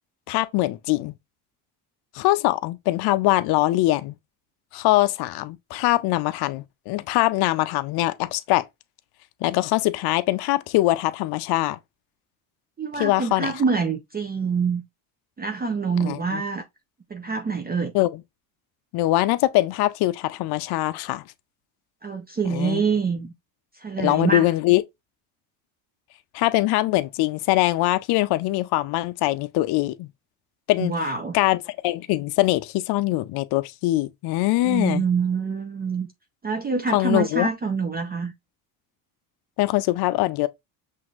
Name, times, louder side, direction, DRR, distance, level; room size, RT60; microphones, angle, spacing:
voice 1, 0.3-1.1 2.1-4.1 4.7-8.7 9.4-11.8 13.0-13.5 16.0-16.4 17.9-18.1 18.9-21.2 22.5-22.8 24.0-24.8 26.3-30.1 30.7-30.9 31.3-31.6 31.8-35.0 36.9-37.5 39.6-40.5, left 17 dB, 55° left, 0.5 m, -22 dB
voice 2, 12.8-14.8 15.4-16.6 17.1-17.9 22.0-23.3 23.7-24.5 30.8-31.4 34.6-36.1 36.4-38.3, right 5 dB, 20° right, 0.5 m, -25 dB
5.8 x 2.7 x 2.4 m
supercardioid pair, 90°, 48 cm